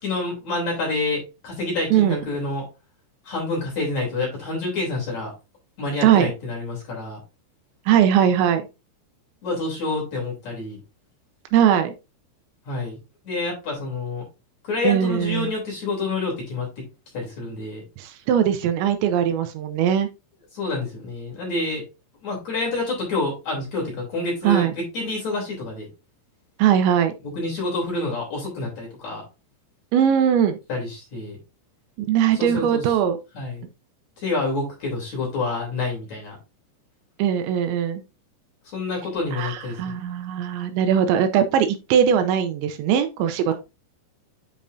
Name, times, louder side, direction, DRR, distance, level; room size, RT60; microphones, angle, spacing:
voice 1, 0.0-2.6 3.2-5.3 5.8-7.2 9.4-10.8 12.7-13.0 13.2-14.2 14.6-16.7 17.1-17.8 20.5-21.8 22.2-25.9 27.2-29.2 30.7-31.4 32.3-32.9 33.3-33.7 34.2-36.4 38.6-39.9 43.5-43.6, left 2 dB, 40° left, -3 dB, 4.0 m, -28 dB
voice 2, 7.9-8.6 11.5-11.9 14.8-15.5 18.0-20.1 24.4-24.7 26.6-27.1 29.9-30.6 32.1-33.2 37.2-38.0 39.3-43.5, right 9 dB, 80° right, 8 dB, 2.9 m, -20 dB
8.7 x 5.2 x 2.6 m, 0.27 s
omnidirectional pair, 5.3 m